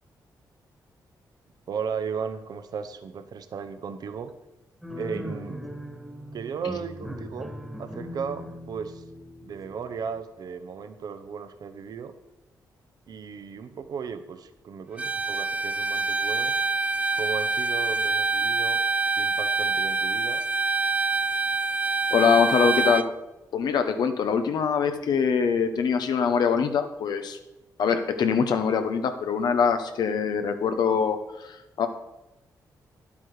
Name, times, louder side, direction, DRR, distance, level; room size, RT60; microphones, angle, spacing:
voice 1, 1.7-4.3 5.0-5.6 6.3-7.5 7.8-9.0 9.4-12.1 13.1-16.6 17.1-18.8 19.1-20.4, right 6 dB, 65° right, 9 dB, 0.9 m, -35 dB
sound 1, 4.8-10.1, left 1 dB, ahead, 1.6 m, -39 dB
Bowed string instrument, 15.0-23.1, right 3 dB, 20° right, 0.4 m, -26 dB
voice 2, 22.1-23.1 23.5-27.4 27.8-31.9, left 6 dB, 75° left, 7 dB, 0.9 m, -23 dB
10.5 x 8.4 x 4.9 m, 0.94 s
cardioid pair, 120°, 7 cm